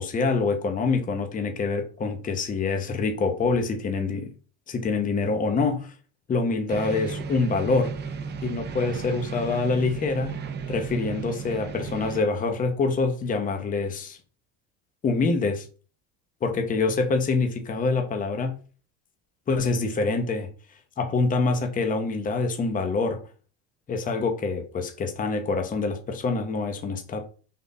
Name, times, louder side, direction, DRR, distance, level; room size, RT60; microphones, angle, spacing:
voice 1, 0.0-4.3 4.7-5.9 6.3-7.9 8.4-10.4 10.7-14.2 15.0-15.7 16.4-18.5 19.5-20.5 21.0-23.2 23.9-27.3, left 3 dB, 20° left, 0.7 m, -25 dB
sound 1, 6.7-12.2, right 5 dB, 30° right, 0.5 m, -34 dB
3.6 x 2.6 x 3.9 m
supercardioid pair, 115°, 37 cm